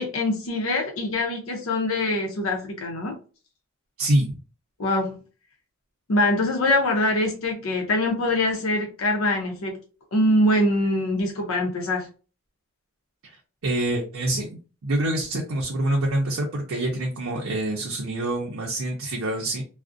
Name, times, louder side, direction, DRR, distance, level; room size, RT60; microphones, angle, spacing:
voice 1, 0.0-3.2 4.8-5.2 6.1-9.8 10.1-12.1, left 1 dB, 80° left, 1 dB, 0.6 m, -23 dB
voice 2, 4.0-4.4 13.2-13.4 13.6-19.6, right 1 dB, 75° right, -1 dB, 0.5 m, -26 dB
2.4 x 2.0 x 2.5 m, 0.35 s
head